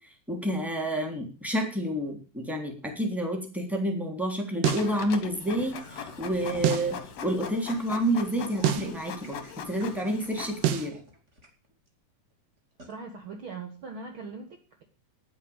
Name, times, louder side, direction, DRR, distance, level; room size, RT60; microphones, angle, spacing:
voice 1, 0.3-9.4 9.7-11.0, equal, ahead, 2 dB, 2.7 m, -29 dB
Printer, 4.6-10.9, left 6 dB, 55° left, 2.0 m, -40 dB
sound 1, 4.6-4.9 6.6-6.9 8.6-8.9 10.6-10.9, right 11 dB, 85° right, 3.1 m, -26 dB
sound 2, 5.6-11.9 12.3-12.4 12.8-12.9, equal, 20° right, 2.7 m, -49 dB
voice 2, 12.8-14.8, right 4 dB, 65° right, 4 dB, 1.3 m, -41 dB
10.0 x 9.0 x 8.8 m, 0.37 s
omnidirectional pair, 4.6 m